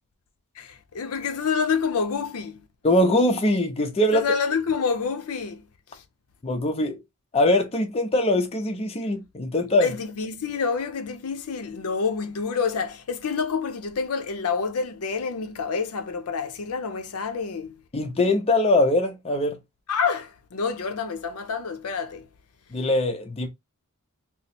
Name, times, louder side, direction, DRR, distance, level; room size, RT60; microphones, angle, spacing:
voice 1, 0.6-2.6 4.1-5.6 5.9-6.0 9.8-17.8 19.9-22.3, left 5 dB, 75° left, 0.5 m, -28 dB
voice 2, 2.8-4.2 6.4-7.0 7.3-9.9 17.9-19.6 22.7-23.5, left 1 dB, 25° left, 0.5 m, -22 dB
2.9 x 2.0 x 4.0 m
head